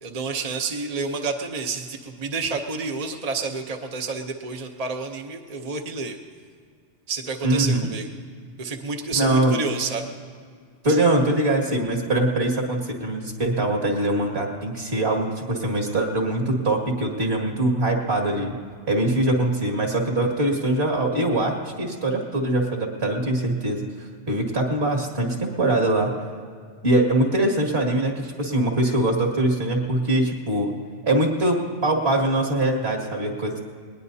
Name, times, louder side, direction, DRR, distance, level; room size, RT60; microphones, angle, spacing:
voice 1, 0.0-6.2 7.1-8.1 8.6-10.1 10.9-11.0, right 4 dB, 35° right, 3 dB, 0.8 m, -29 dB
voice 2, 7.4-7.9 9.2-9.6 10.8-18.5 18.9-26.1 26.8-30.7 31.0-33.6, right 1 dB, 60° right, 1 dB, 2.3 m, -23 dB
20.5 x 20.0 x 2.7 m, 2.1 s
omnidirectional pair, 1.2 m